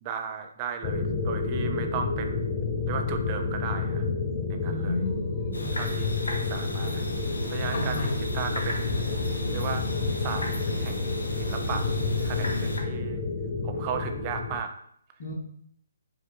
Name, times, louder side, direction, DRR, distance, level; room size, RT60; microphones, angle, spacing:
voice 1, 0.0-2.4 2.9-4.0 4.5-5.0 5.7-7.1 7.5-9.9 10.2-10.4 10.8-11.9 12.2-13.2 13.6-14.7, right 7 dB, 30° right, 6 dB, 0.4 m, -36 dB
sound 1, 0.8-14.6, left 4 dB, 30° left, 0.5 m, -30 dB
voice 2, 4.6-5.7 7.7-8.1 15.2-15.3, left 2 dB, 55° left, -3 dB, 1.5 m, -32 dB
sound 2, 5.5-12.8, equal, 90° left, 0.7 m, -33 dB
5.2 x 2.4 x 2.6 m, 0.68 s
hypercardioid pair, 145°, 0 cm